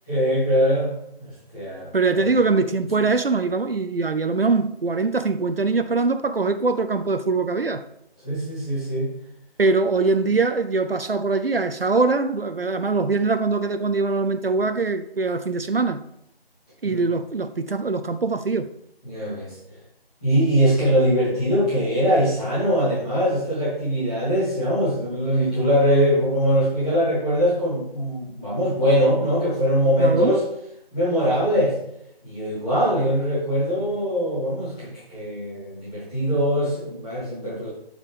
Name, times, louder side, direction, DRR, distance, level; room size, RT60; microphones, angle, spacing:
voice 1, 0.1-0.9 1.2-2.3 8.2-9.1 16.8-17.0 19.0-19.5 20.2-30.4 30.9-31.7 32.2-37.7, equal, 5° left, 1.4 m, -22 dB
voice 2, 1.9-7.8 9.6-16.0 16.8-18.7 30.0-30.3, right 3 dB, 70° right, 0.6 m, -22 dB
12.5 x 5.1 x 3.4 m
figure-of-eight pair, 170°, 30 cm